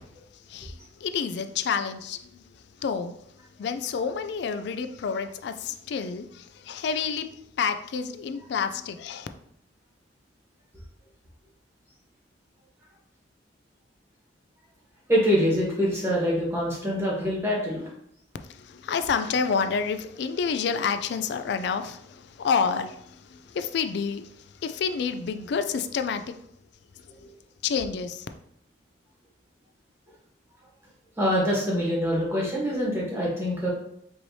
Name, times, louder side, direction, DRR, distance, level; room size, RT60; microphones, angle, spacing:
voice 1, 0.5-3.2 3.6-7.3 7.6-9.3 18.5-26.4 27.6-28.3, left 6 dB, 65° left, 0.3 m, -29 dB
voice 2, 15.1-17.9 27.2-27.3 31.2-33.7, equal, 15° right, 1.3 m, -25 dB
4.6 x 3.0 x 2.7 m
head